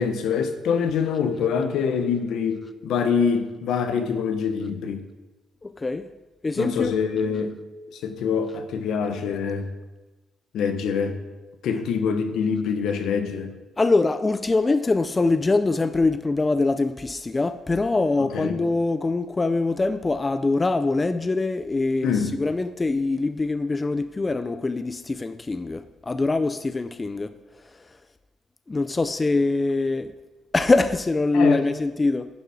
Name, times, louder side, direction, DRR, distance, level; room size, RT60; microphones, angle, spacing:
voice 1, 0.0-5.0 6.6-7.5 7.9-9.7 10.5-11.2 11.6-13.6 18.2-18.6 22.0-22.3 31.3-31.6, left 6 dB, 80° left, 1.0 m, -25 dB
voice 2, 5.6-6.1 6.4-6.9 13.8-27.3 28.7-30.1 30.5-32.3, left 3 dB, 25° left, 0.4 m, -23 dB
10.5 x 5.4 x 4.9 m
cardioid pair, 90°, 0 cm